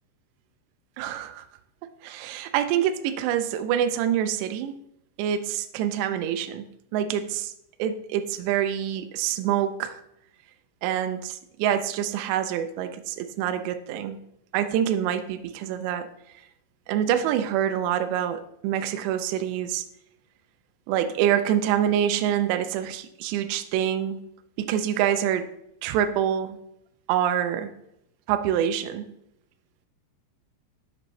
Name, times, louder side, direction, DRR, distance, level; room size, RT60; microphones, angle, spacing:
voice 1, 1.0-1.4 1.8-4.8 5.2-6.7 6.9-7.5 7.8-10.0 10.8-14.2 14.5-16.1 16.9-19.8 20.9-24.2 24.6-25.5 25.8-26.6 27.1-27.7 28.3-29.0, right 10 dB, 85° right, 8 dB, 2.5 m, -26 dB
7.7 x 6.4 x 3.1 m, 0.78 s
omnidirectional pair, 5.4 m